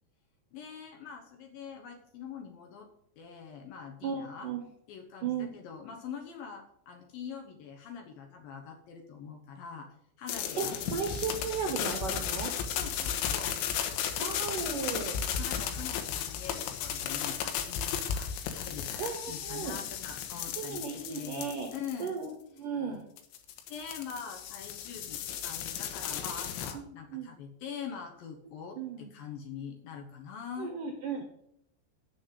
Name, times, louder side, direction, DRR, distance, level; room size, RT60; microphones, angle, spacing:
voice 1, 0.5-2.9 3.2-4.5 4.9-9.9 10.2-10.8 12.7-13.6 15.4-21.5 21.7-22.1 22.6-22.9 23.7-30.7, left 7 dB, 65° left, 2 dB, 2.5 m, -44 dB
voice 2, 4.0-4.6 5.2-5.5 10.6-12.5 14.2-15.2 19.0-19.8 20.6-21.7 22.0-22.3 22.6-23.0 27.1-27.3 28.8-29.1 30.6-31.2, right 6 dB, 70° right, 4 dB, 2.0 m, -35 dB
sound 1, 10.3-22.3 23.2-26.7, left 9 dB, 90° left, 3.4 m, -35 dB
7.5 x 7.4 x 7.6 m, 0.72 s
omnidirectional pair, 5.3 m